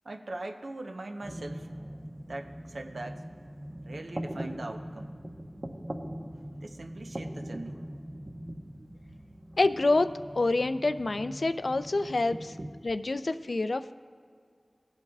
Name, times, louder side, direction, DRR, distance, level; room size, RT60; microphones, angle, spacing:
voice 1, 0.0-1.7 2.3-3.2 3.8-5.1 6.3-7.8, right 2 dB, 80° right, 4 dB, 0.8 m, -41 dB
sound 1, 1.2-12.7, right 1 dB, 35° right, 0.9 m, -41 dB
voice 2, 9.6-12.5 12.8-13.9, left 2 dB, 70° left, 11 dB, 0.4 m, -27 dB
19.5 x 7.9 x 2.4 m, 2.1 s
wide cardioid pair, 45°, 0 cm